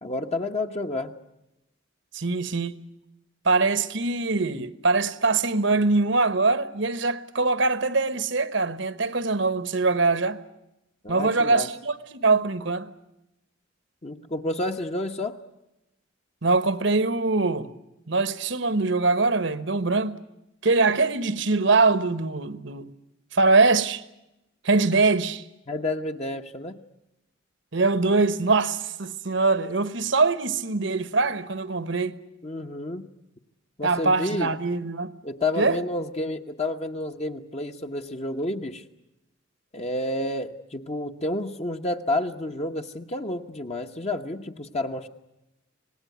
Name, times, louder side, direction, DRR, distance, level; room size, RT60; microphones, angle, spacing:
voice 1, 0.0-1.1 11.0-11.7 14.0-15.4 25.7-26.8 32.4-33.1 33.8-34.5 35.2-38.8 39.7-45.1, left 2 dB, 35° left, 1.1 m, -30 dB
voice 2, 2.1-2.8 3.4-10.4 11.1-12.9 16.4-17.7 18.1-20.2 20.6-22.9 23.3-24.0 24.6-25.4 27.7-32.2 33.8-35.1 35.6-35.8, right 3 dB, 65° right, 1.2 m, -23 dB
25.5 x 19.0 x 9.4 m
head